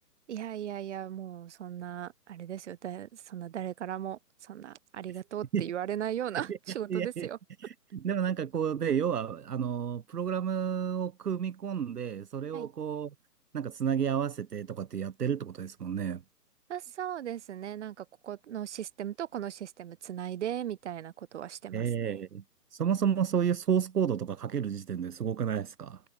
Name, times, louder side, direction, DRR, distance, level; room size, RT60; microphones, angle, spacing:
voice 1, 0.3-7.4 12.5-12.7 16.7-22.2, right 10 dB, 45° right, 5.9 m, -37 dB
voice 2, 6.9-7.3 7.6-13.1 13.5-16.2 21.7-22.4 22.7-26.0, right 8 dB, 70° right, 1.7 m, -31 dB
hypercardioid pair, 160°, 49 cm